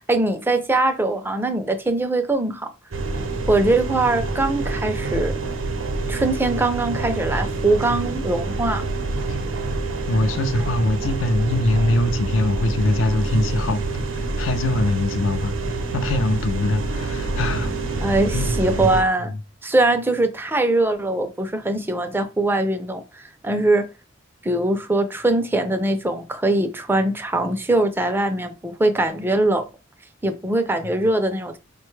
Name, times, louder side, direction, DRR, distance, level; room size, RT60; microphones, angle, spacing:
voice 1, 0.1-2.7 3.5-5.3 6.1-8.8 18.0-19.3 19.6-23.9 24.4-29.6 30.2-31.6, right 2 dB, 10° right, 0.4 m, -22 dB
sound 1, 2.9-19.0, right 3 dB, 80° right, 0.7 m, -26 dB
voice 2, 10.1-15.5 15.9-17.7 18.3-19.4, left 2 dB, 75° left, 0.5 m, -23 dB
5.0 x 2.2 x 3.1 m
head